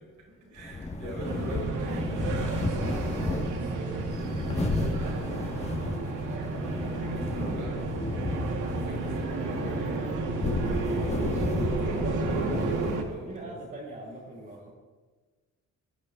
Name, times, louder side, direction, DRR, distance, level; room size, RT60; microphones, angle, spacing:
voice 1, 0.5-4.4 5.4-5.7 7.3-7.9 8.7-10.3 11.2-12.6 13.0-13.6, right 1 dB, 65° right, -1 dB, 4.6 m, -44 dB
sound 1, 0.6-13.3, left 2 dB, 20° left, 1.5 m, -33 dB
voice 2, 1.0-1.6 5.1-6.0 6.3-7.8 11.6-12.3 13.2-14.7, right 2 dB, 25° right, -3 dB, 5.6 m, -44 dB
sound 2, 1.2-13.0, right 3 dB, 90° right, 2.2 m, -32 dB
25.0 x 13.0 x 3.6 m, 1.3 s
cardioid pair, 175°, 30 cm